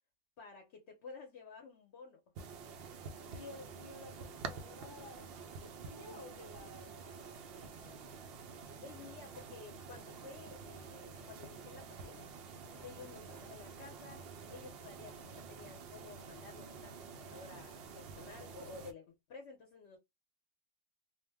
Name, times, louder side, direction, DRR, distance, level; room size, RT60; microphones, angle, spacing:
voice 1, 0.4-2.2 8.8-14.2 14.5-20.0, left 4 dB, 55° left, 0.8 m, -53 dB
sound 1, 2.4-18.9, right 5 dB, 75° right, 0.5 m, -49 dB
voice 2, 3.3-8.1, left 2 dB, 25° left, 0.7 m, -53 dB
2.7 x 2.1 x 3.3 m
omnidirectional pair, 1.6 m